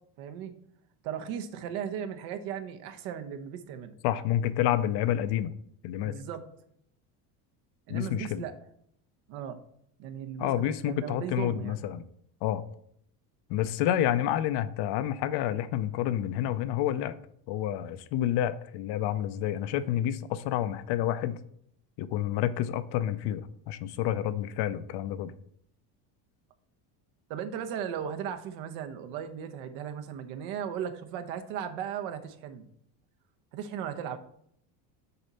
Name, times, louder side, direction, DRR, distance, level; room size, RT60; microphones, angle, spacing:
voice 1, 0.2-0.6 1.0-4.0 6.0-6.5 7.9-8.5 9.3-9.6 10.0-11.8 27.3-32.7 33.5-34.2, right 8 dB, 75° right, 7 dB, 1.0 m, -37 dB
voice 2, 4.0-5.5 5.8-6.1 7.9-8.4 10.4-12.0 12.4-12.6 13.5-17.2 17.5-21.4 22.0-25.3, left 11 dB, 60° left, 13 dB, 0.6 m, -29 dB
6.8 x 4.1 x 5.5 m, 0.68 s
cardioid pair, 130°, 46 cm